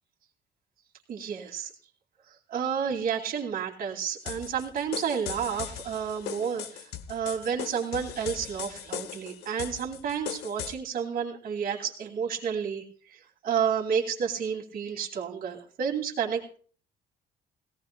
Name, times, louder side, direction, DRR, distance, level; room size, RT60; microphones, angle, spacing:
voice 1, 1.1-1.7 2.3-12.8 13.1-16.6, right 7 dB, 60° right, -1 dB, 2.8 m, -31 dB
sound 1, 4.3-10.7, left 9 dB, 85° left, 1.0 m, -39 dB
18.5 x 17.0 x 2.3 m, 0.43 s
cardioid pair, 110°, 17 cm